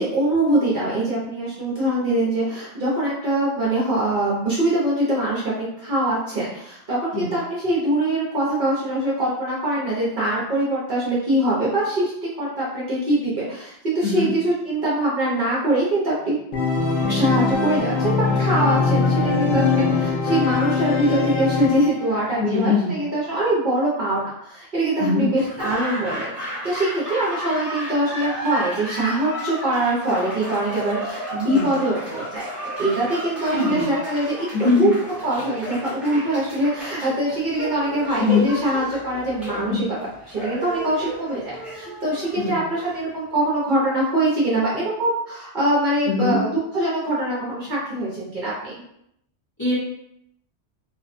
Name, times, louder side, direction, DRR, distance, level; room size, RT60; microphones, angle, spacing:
voice 1, 0.0-16.4 17.1-32.5 32.8-34.3 34.8-35.0 35.2-39.8 40.3-48.7, right 1 dB, 50° right, -7 dB, 0.8 m, -23 dB
Organ, 16.5-22.2, left 4 dB, 60° left, 0.7 m, -22 dB
voice 2, 22.4-23.0 25.0-25.3 31.5-31.7 33.5-33.9 34.5-34.8 38.2-38.4 39.5-39.8 42.3-42.6 46.1-46.4 49.6-49.8, left 4 dB, 25° left, -11 dB, 0.9 m, -21 dB
Laughter / Applause, 25.3-43.4, equal, ahead, 0.9 m, -34 dB
2.6 x 2.1 x 2.5 m, 0.76 s
omnidirectional pair, 1.2 m